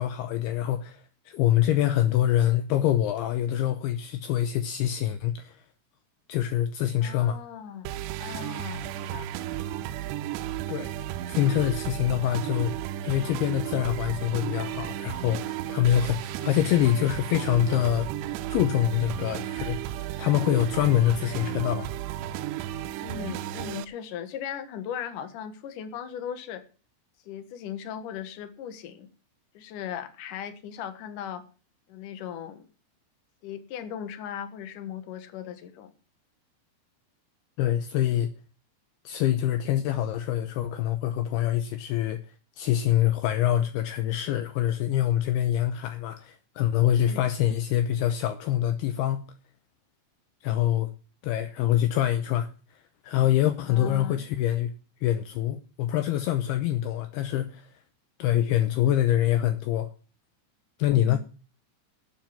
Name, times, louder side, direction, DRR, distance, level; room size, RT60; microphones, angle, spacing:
voice 1, 0.0-5.6 6.3-7.4 10.7-10.9 11.3-12.7 13.0-18.1 18.5-19.8 20.2-21.9 37.6-38.3 39.1-42.2 42.6-49.3 50.4-50.9 51.2-52.5 53.0-54.7 55.0-57.7 58.2-59.9 60.8-61.2, left 12 dB, 75° left, 2.7 m, -25 dB
voice 2, 7.0-7.9 8.2-9.3 23.0-26.6 27.3-29.1 29.5-31.4 31.9-32.7 33.4-35.9 47.0-47.3 53.7-54.2 60.9-61.2, left 9 dB, 60° left, 2.7 m, -38 dB
sound 1, 7.9-23.9, right 12 dB, 80° right, 2.8 m, -34 dB
13.0 x 7.5 x 7.4 m
omnidirectional pair, 4.9 m